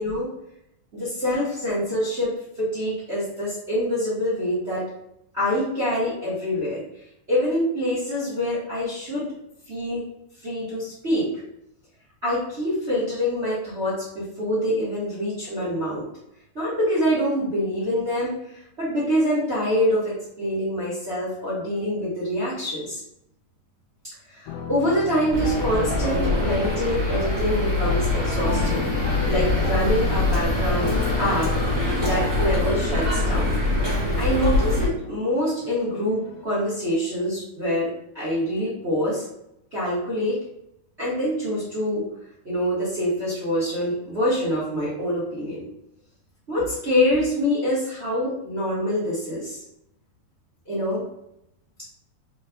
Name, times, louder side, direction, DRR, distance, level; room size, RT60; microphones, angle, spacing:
voice 1, 0.9-4.9 5.3-6.8 7.3-9.3 9.7-10.0 10.4-11.3 12.2-16.0 16.5-23.0 24.3-28.8 29.3-31.5 31.9-33.6 34.2-37.9 38.1-39.3 39.7-40.4 41.0-42.0 42.4-45.6 46.5-49.6 50.6-51.0, equal, 75° right, -10 dB, 0.6 m, -25 dB
sound 1, 24.5-36.5, left 7 dB, 90° left, 2.3 m, -34 dB
sound 2, 25.3-34.9, left 2 dB, 30° right, 1.1 m, -24 dB
5.0 x 4.2 x 2.3 m, 0.80 s
omnidirectional pair, 4.0 m